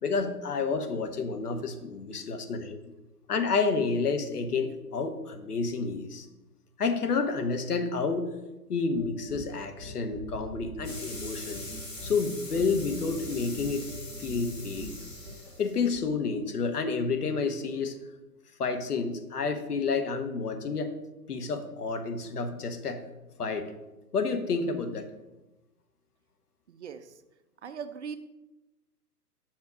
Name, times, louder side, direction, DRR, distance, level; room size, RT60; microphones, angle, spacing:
voice 1, 0.0-2.8 3.3-6.3 6.8-8.3 8.7-11.6 12.0-13.9 14.2-14.9 15.6-17.9 18.6-20.9 21.3-23.0 23.4-23.7 24.1-25.1, left 4 dB, 70° left, 8 dB, 1.2 m, -30 dB
sound 1, 9.0-15.3, right 1 dB, 5° left, 2.0 m, -42 dB
sound 2, 10.8-16.0, left 2 dB, 85° left, 2.4 m, -43 dB
voice 2, 27.6-28.2, right 7 dB, 45° right, 10 dB, 0.6 m, -38 dB
7.4 x 5.6 x 5.0 m, 1.0 s
figure-of-eight pair, 130°, 48 cm